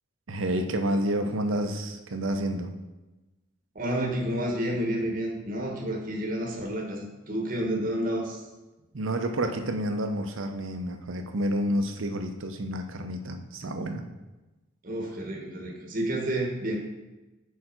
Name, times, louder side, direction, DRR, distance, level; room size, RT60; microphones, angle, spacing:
voice 1, 0.3-2.7 8.9-14.0, right 1 dB, 75° right, 6 dB, 0.7 m, -29 dB
voice 2, 3.7-8.4 14.8-16.8, right 1 dB, 40° right, 0 dB, 1.1 m, -30 dB
6.6 x 5.0 x 4.4 m, 1.1 s
head